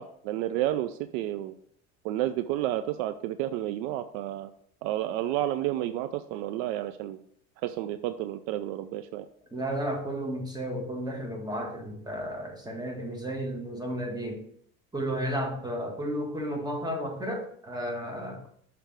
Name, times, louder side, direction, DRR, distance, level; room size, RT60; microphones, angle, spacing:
voice 1, 0.0-1.5 2.0-4.5 4.8-7.2 7.6-9.3, right 13 dB, 70° right, 11 dB, 0.5 m, -31 dB
voice 2, 9.5-14.4 14.9-18.4, equal, 10° right, 1 dB, 1.8 m, -33 dB
6.6 x 3.4 x 5.9 m, 0.64 s
hypercardioid pair, 70°, 41 cm